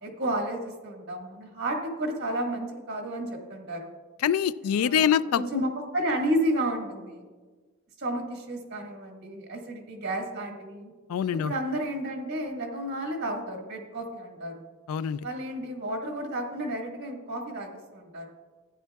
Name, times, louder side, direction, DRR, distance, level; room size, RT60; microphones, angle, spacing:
voice 1, 0.0-3.9 4.7-7.3 8.0-10.9 11.3-14.6 15.2-18.3, right 1 dB, 50° right, 2 dB, 1.7 m, -32 dB
voice 2, 4.2-5.6 11.1-11.5 14.9-15.2, left 8 dB, 85° left, 17 dB, 0.3 m, -25 dB
14.5 x 10.0 x 2.3 m, 1.4 s
head